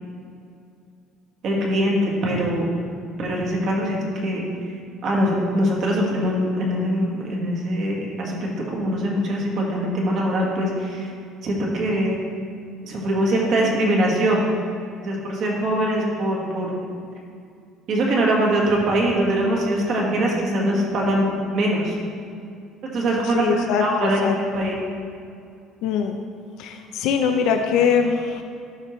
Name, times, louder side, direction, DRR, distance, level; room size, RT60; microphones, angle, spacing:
voice 1, 1.4-2.7 3.2-4.4 5.0-11.1 11.4-12.2 12.8-14.5 15.0-16.7 17.9-22.0 22.8-23.4 23.8-24.9, right 1 dB, 45° right, -2 dB, 1.5 m, -22 dB
voice 2, 23.2-24.4 25.8-26.2 26.6-28.4, left 6 dB, 65° left, 5 dB, 0.5 m, -22 dB
12.0 x 5.4 x 3.1 m, 2.4 s
cardioid pair, 170°, 0 cm